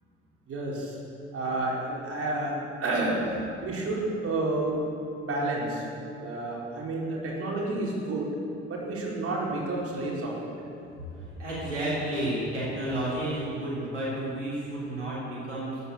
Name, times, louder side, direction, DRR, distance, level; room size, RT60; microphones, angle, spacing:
voice 1, 0.5-1.0 1.3-2.5 2.8-3.2 3.6-4.8 5.2-5.9 6.2-8.3 8.7-10.5, right 2 dB, 40° right, -4 dB, 4.5 m, -30 dB
voice 2, 11.1-15.8, right 1 dB, 85° right, -9 dB, 3.8 m, -31 dB
13.5 x 10.0 x 8.5 m, 2.8 s
figure-of-eight pair, 55°, 35 cm